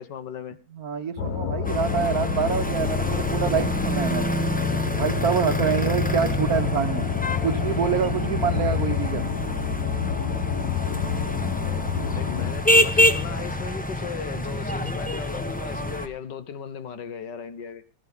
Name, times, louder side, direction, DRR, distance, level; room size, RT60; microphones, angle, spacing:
voice 1, 0.0-0.6 12.1-17.8, left 7 dB, 70° left, 1.7 m, -36 dB
voice 2, 0.7-4.4 4.9-7.1 7.4-9.3, right 7 dB, 60° right, 1.3 m, -26 dB
sound 1, 1.2-12.5, left 8 dB, 55° left, 1.5 m, -28 dB
sound 2, 1.6-16.1, left 1 dB, 10° left, 0.4 m, -27 dB
18.0 x 13.5 x 3.5 m
omnidirectional pair, 2.0 m